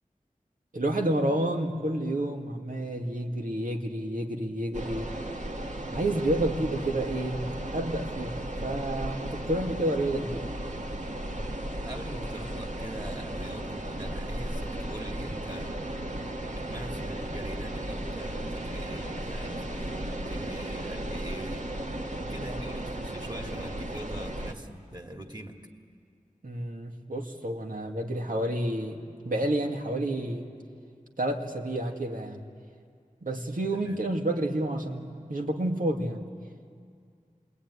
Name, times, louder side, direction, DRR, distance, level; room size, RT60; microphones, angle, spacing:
voice 1, 0.7-5.1 5.9-7.4 7.7-10.4 26.4-30.5 31.2-32.4 33.2-36.2, right 1 dB, 80° right, 1 dB, 2.3 m, -30 dB
sound 1, 4.7-24.5, right 1 dB, 60° right, 1.9 m, -35 dB
voice 2, 11.8-15.8 16.5-21.7 22.3-25.6 33.7-34.0, right 1 dB, 30° right, 3 dB, 2.6 m, -42 dB
27.5 x 22.0 x 9.8 m, 2.2 s
wide cardioid pair, 40°, 14 cm